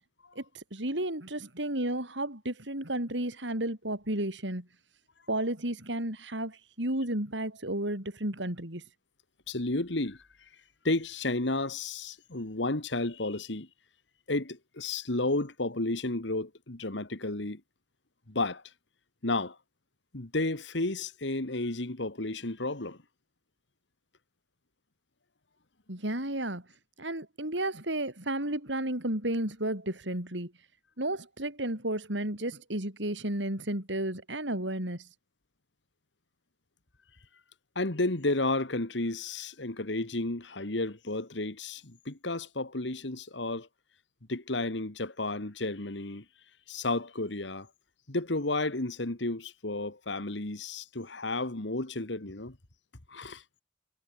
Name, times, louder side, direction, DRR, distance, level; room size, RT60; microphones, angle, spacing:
voice 1, 0.3-4.6 5.3-8.8 25.9-26.6 27.0-30.5 31.0-35.1, right 1 dB, 80° right, 6.6 m, -32 dB
voice 2, 9.5-10.2 10.8-13.7 14.3-17.6 18.3-18.6 19.2-19.6 20.1-23.0 37.8-43.7 44.3-46.2 46.7-47.7 48.1-52.6 53.1-53.4, left 2 dB, 75° left, 2.1 m, -32 dB
head